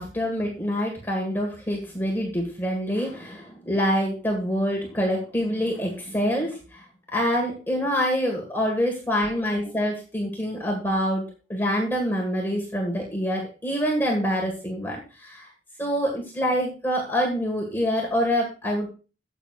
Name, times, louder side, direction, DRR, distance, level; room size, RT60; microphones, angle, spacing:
voice 1, 0.0-6.6 7.1-11.2 11.5-15.5 15.8-18.9, equal, 10° left, -1 dB, 1.8 m, -26 dB
14.0 x 8.2 x 2.5 m, 0.34 s
head